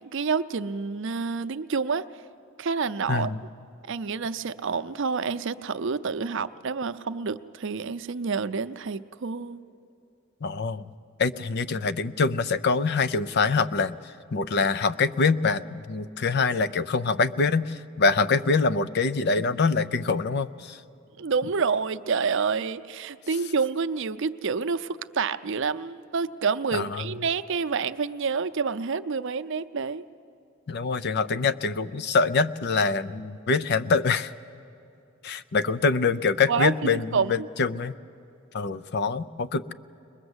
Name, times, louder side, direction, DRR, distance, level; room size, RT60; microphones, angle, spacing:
voice 1, 0.0-2.1 2.6-3.3 3.9-9.6 21.2-30.0 36.5-37.5, right 5 dB, 65° right, 12 dB, 0.6 m, -28 dB
voice 2, 3.1-3.4 10.4-10.9 11.2-20.8 26.7-27.0 30.7-34.3 35.2-37.9 38.5-39.7, left 4 dB, 55° left, 14 dB, 0.6 m, -25 dB
22.0 x 21.0 x 8.0 m, 2.7 s
head